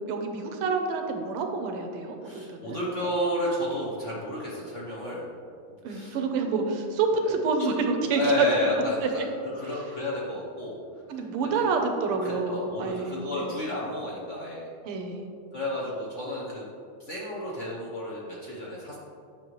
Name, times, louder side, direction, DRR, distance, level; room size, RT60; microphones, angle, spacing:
voice 1, 0.1-2.8 5.8-8.5 8.8-9.1 9.7-9.8 11.1-13.5 14.8-15.2, right 4 dB, 85° right, 4 dB, 1.7 m, -28 dB
voice 2, 2.2-5.3 5.9-6.2 6.5-6.6 7.2-7.3 7.6-7.7 8.2-11.6 12.2-14.7 15.5-16.7 17.0-19.0, left 1 dB, 50° left, -4 dB, 0.9 m, -32 dB
8.8 x 6.0 x 3.1 m, 2.4 s
omnidirectional pair, 2.4 m